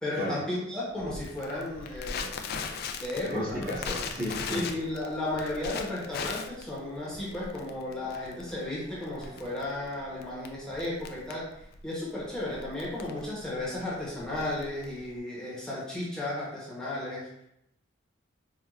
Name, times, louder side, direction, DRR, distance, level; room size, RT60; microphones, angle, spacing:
voice 1, 0.0-3.7 4.5-11.5 11.8-17.4, left 1 dB, 5° left, -8 dB, 0.9 m, -34 dB
Crackle, 1.0-15.2, left 5 dB, 55° left, 0.3 m, -39 dB
voice 2, 3.2-4.6, left 1 dB, 50° right, -7 dB, 1.3 m, -33 dB
sound 1, 3.8-6.3 6.6-8.5 8.8-10.2, equal, 25° right, 0.9 m, -54 dB
4.4 x 2.3 x 2.4 m, 0.80 s
head